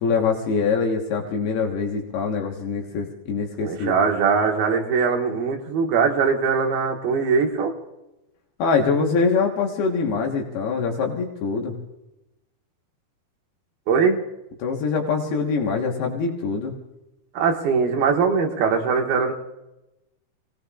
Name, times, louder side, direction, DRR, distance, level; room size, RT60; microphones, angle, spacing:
voice 1, 0.0-4.0 8.6-11.7 14.6-16.8, left 5 dB, 80° left, 1 dB, 3.4 m, -24 dB
voice 2, 3.6-7.8 13.9-14.2 17.3-19.3, right 5 dB, 70° right, 1 dB, 3.3 m, -21 dB
28.5 x 19.0 x 2.5 m, 0.96 s
omnidirectional pair, 4.6 m